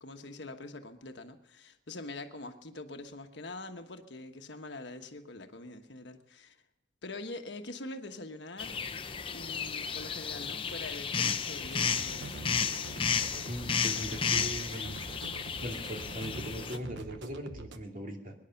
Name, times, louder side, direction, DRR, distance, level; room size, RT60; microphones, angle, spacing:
voice 1, 0.0-6.6 7.0-8.8 9.3-12.4, left 2 dB, 70° left, 6 dB, 1.3 m, -44 dB
sound 1, 8.6-16.8, left 6 dB, 30° left, 0.7 m, -33 dB
sound 2, 11.6-17.8, right 3 dB, 75° right, 1.0 m, -45 dB
voice 2, 13.5-15.0 15.6-18.3, equal, 45° right, 2 dB, 2.5 m, -39 dB
23.0 x 11.0 x 5.8 m, 0.85 s
head